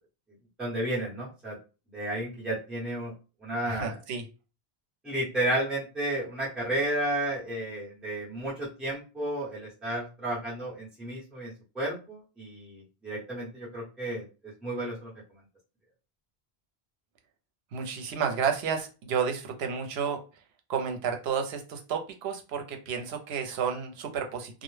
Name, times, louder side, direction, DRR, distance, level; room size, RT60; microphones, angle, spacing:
voice 1, 0.6-1.5 1.9-3.1 3.4-4.0 5.0-11.5 11.7-14.2 14.6-15.1, right 1 dB, ahead, -7 dB, 0.8 m, -32 dB
voice 2, 3.6-4.2 17.7-20.2 20.7-24.6, right 6 dB, 80° right, 4 dB, 0.8 m, -31 dB
2.1 x 2.0 x 3.1 m, 0.32 s
omnidirectional pair, 1.1 m